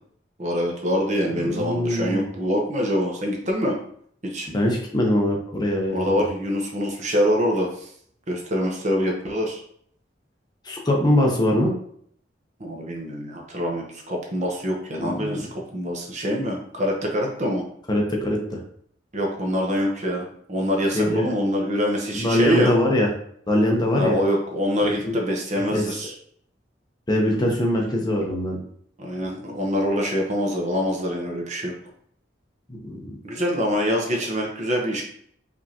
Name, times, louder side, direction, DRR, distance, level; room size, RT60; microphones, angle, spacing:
voice 1, 0.4-3.8 4.2-4.5 5.9-7.9 8.3-9.6 12.6-15.5 15.7-17.6 19.1-22.7 23.9-26.1 27.3-27.7 29.0-31.7 33.2-35.0, equal, 40° right, 0 dB, 1.0 m, -25 dB
voice 2, 1.4-2.3 4.5-6.2 10.6-11.7 15.0-15.4 17.9-18.6 20.9-21.3 22.1-23.1 23.5-24.2 25.0-25.1 25.7-25.8 27.1-28.6 32.8-33.2, left 1 dB, 25° left, 0 dB, 0.8 m, -22 dB
5.0 x 3.5 x 2.9 m, 0.64 s
head